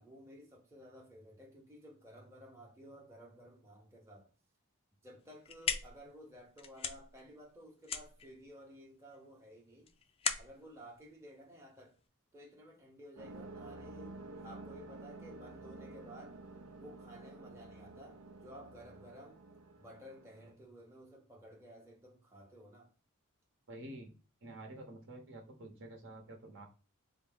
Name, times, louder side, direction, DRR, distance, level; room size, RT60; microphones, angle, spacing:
voice 1, 0.0-4.3 5.0-9.9 10.3-12.0 12.3-16.4 16.8-19.4 19.8-22.9, equal, 15° right, 0.8 m, -54 dB
sound 1, 5.2-12.1, left 6 dB, 25° left, 0.3 m, -41 dB
sound 2, 13.2-20.5, right 2 dB, 90° right, 0.6 m, -51 dB
voice 2, 23.7-24.1 24.4-26.7, right 1 dB, 60° right, 0.9 m, -49 dB
3.9 x 2.0 x 3.8 m
head